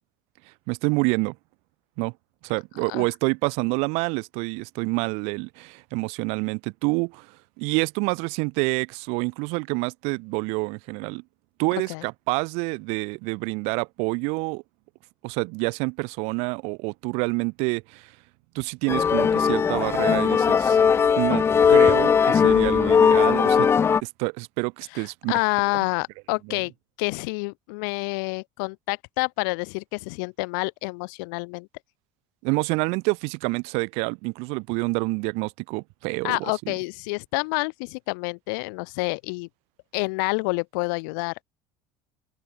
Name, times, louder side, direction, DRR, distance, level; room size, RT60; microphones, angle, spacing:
voice 1, 0.7-1.4 2.0-2.1 2.4-11.2 11.6-14.6 15.2-18.1 18.5-20.8 21.1-21.4 21.7-23.7 24.0-25.4 26.5-26.6 32.4-36.4 36.6-36.7, right 31 dB, 80° right, 1.4 m, -27 dB
sound 1, 18.9-24.0, left 6 dB, 25° left, 0.4 m, -19 dB
voice 2, 24.9-26.7 27.0-31.7 36.2-39.5 39.9-41.4, left 32 dB, 85° left, 2.6 m, -28 dB
open air
supercardioid pair, 115°, 11 cm